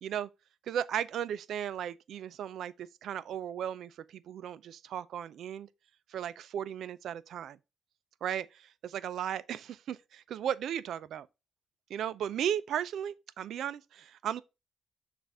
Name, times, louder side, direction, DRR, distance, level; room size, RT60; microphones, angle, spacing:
voice 1, 0.7-5.7 6.1-7.6 8.2-11.3 11.9-14.4, right 9 dB, 70° right, 0.4 m, -36 dB
6.9 x 2.5 x 5.4 m
cardioid pair, 90°, 0 cm